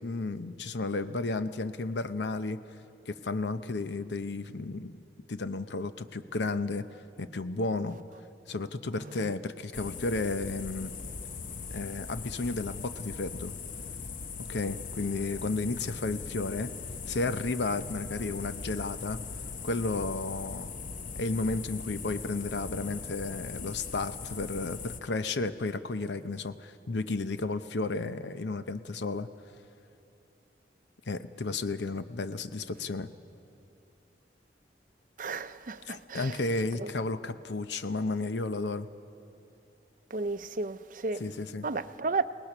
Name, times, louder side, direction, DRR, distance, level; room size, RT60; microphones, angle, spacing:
voice 1, 0.0-2.6 3.1-5.0 5.3-6.9 7.2-8.0 8.5-10.9 11.7-13.5 14.4-16.7 17.1-19.2 19.6-20.7 21.1-29.3 31.1-33.1 35.9-38.9 41.2-41.7, left 3 dB, 80° left, 0.8 m, -33 dB
sound 1, 9.7-25.0, left 5 dB, 50° left, 0.7 m, -40 dB
voice 2, 35.2-36.4 36.8-36.9 40.1-41.2 41.6-42.2, right 3 dB, 50° right, 0.6 m, -33 dB
28.5 x 19.0 x 6.0 m
head